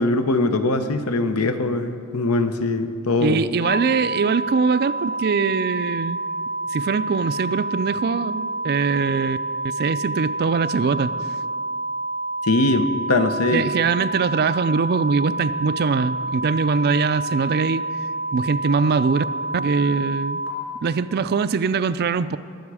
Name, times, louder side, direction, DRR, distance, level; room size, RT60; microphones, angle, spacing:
voice 1, 0.0-3.4 12.4-13.6, left 2 dB, 85° left, 8 dB, 0.9 m, -21 dB
voice 2, 3.2-6.2 6.7-9.4 9.6-11.1 13.5-17.8 18.3-19.3 19.5-20.4 20.8-22.4, right 5 dB, 45° right, 14 dB, 0.4 m, -22 dB
sound 1, 3.6-20.5, right 2 dB, 50° left, 3.1 m, -28 dB
22.0 x 7.9 x 4.8 m, 2.3 s
head